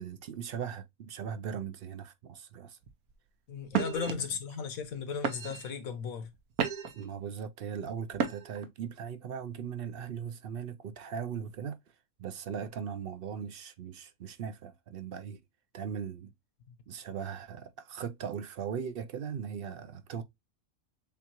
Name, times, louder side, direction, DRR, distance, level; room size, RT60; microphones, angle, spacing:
voice 1, 0.0-2.8 4.1-4.3 6.9-11.8 12.2-15.4 15.7-16.3 16.9-20.2, right 7 dB, 60° right, 0.6 m, -39 dB
sound 1, 2.8-3.1 3.7-4.1 4.8-4.9 5.2-5.7 6.2-7.1 8.1-8.7, right 7 dB, 90° right, 1.3 m, -32 dB
voice 2, 3.5-6.3, left 6 dB, 75° left, 1.3 m, -36 dB
7.1 x 2.4 x 2.9 m
omnidirectional pair, 1.5 m